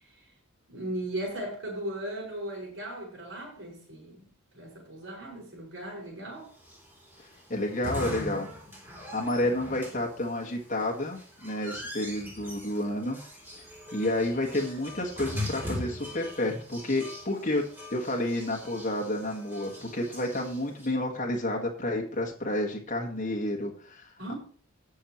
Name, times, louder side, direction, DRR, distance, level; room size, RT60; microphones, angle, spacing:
voice 1, 0.7-6.5 24.2-24.3, right 1 dB, 60° right, 5.3 m, -37 dB
sound 1, 6.6-20.9, left 1 dB, 10° right, 3.3 m, -41 dB
voice 2, 7.5-8.5 9.1-13.2 13.5-13.6 13.9-17.6 17.9-24.3, left 1 dB, 35° left, 1.6 m, -30 dB
18.0 x 6.4 x 3.0 m
head